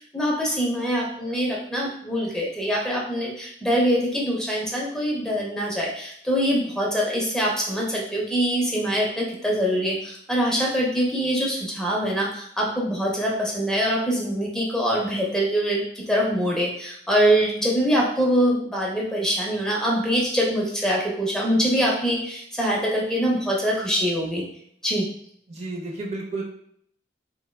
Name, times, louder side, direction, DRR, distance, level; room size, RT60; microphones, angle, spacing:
voice 1, 0.0-24.5 24.8-25.1, equal, 5° left, -3 dB, 0.6 m, -24 dB
voice 2, 25.5-26.4, right 2 dB, 40° right, -1 dB, 0.5 m, -31 dB
3.4 x 3.3 x 2.2 m, 0.67 s
head